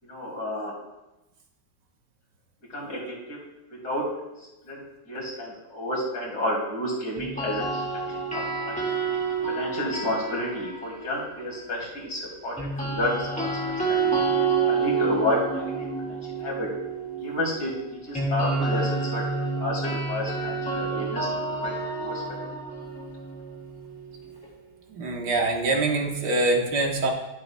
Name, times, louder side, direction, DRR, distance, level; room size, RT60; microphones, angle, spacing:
voice 1, 0.0-0.7 2.7-3.4 3.8-4.1 4.4-8.8 9.5-13.5 13.9-14.2 14.7-16.7 17.2-19.2 19.6-22.4, left 1 dB, 65° left, -4 dB, 3.1 m, -31 dB
sound 1, 7.2-11.3 12.6-24.4, right 4 dB, 5° left, 1.8 m, -29 dB
voice 2, 24.9-27.1, right 2 dB, 85° right, 0 dB, 1.9 m, -24 dB
12.0 x 7.6 x 2.3 m, 1.0 s
omnidirectional pair, 1.7 m